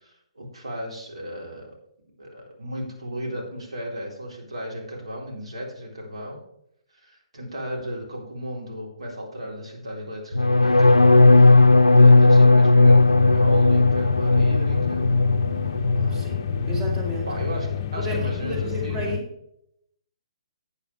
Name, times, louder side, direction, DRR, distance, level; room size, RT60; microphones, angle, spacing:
voice 1, 0.0-1.7 2.2-6.4 6.9-11.6 11.9-15.1 16.0-16.3 17.3-19.2, equal, 70° right, -1 dB, 3.4 m, -35 dB
sound 1, 10.3-16.2 16.5-17.0 17.3-17.7, left 2 dB, 90° left, 0.4 m, -16 dB
sound 2, 12.8-19.2, left 9 dB, 40° left, 0.5 m, -29 dB
voice 2, 16.1-17.3 18.0-19.3, equal, 20° right, 0 dB, 2.1 m, -32 dB
11.5 x 8.4 x 3.3 m, 0.76 s
figure-of-eight pair, 130°, 3 cm